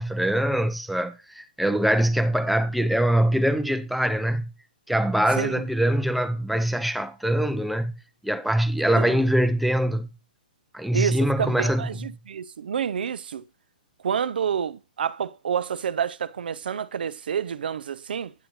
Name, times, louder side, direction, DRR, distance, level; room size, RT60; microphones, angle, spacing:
voice 1, 0.0-4.4 4.9-7.9 8.2-10.1 10.7-11.9, right 1 dB, ahead, 0.4 m, -23 dB
voice 2, 10.9-13.4 14.0-18.3, right 8 dB, 85° right, 0.4 m, -28 dB
8.9 x 8.0 x 3.0 m
hypercardioid pair, 150°, 5 cm